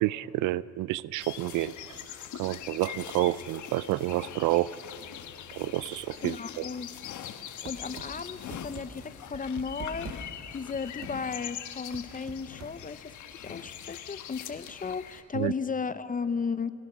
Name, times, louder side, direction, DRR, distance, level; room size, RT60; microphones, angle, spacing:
voice 1, 0.0-2.0 2.4-4.7 5.5-6.6 15.3-15.5, right 16 dB, 90° right, 20 dB, 0.5 m, -29 dB
sound 1, 1.2-15.2, left 10 dB, 75° left, 1.3 m, -42 dB
voice 2, 6.2-7.0 7.6-10.1 10.5-16.7, left 5 dB, 25° left, 15 dB, 0.7 m, -35 dB
sound 2, 7.6-8.1 8.5-8.8 9.3-10.2 10.7-11.1 11.9-12.7, right 7 dB, 60° right, 2.0 m, -42 dB
30.0 x 17.0 x 6.1 m, 2.6 s
cardioid pair, 90°, 30 cm